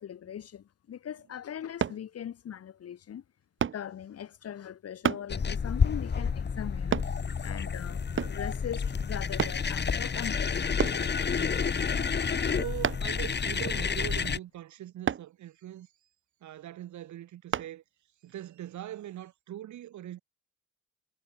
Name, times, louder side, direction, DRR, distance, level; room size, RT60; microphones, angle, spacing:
voice 1, 0.0-3.2 3.7-7.0 7.4-11.1, left 9 dB, 55° left, 1.5 m, -40 dB
sound 1, 1.8-2.0 3.6-3.8 5.0-5.3 6.9-7.1 8.2-8.5 9.4-9.6 10.8-11.0 12.8-13.2 15.1-15.3 17.5-17.7 18.3-18.4, right 8 dB, 40° right, 1.1 m, -29 dB
sound 2, 5.3-14.4, left 6 dB, 35° left, 2.1 m, -30 dB
voice 2, 12.5-15.9 16.4-17.8 18.2-20.2, right 12 dB, 70° right, 2.2 m, -41 dB
cardioid pair, 90°, 30 cm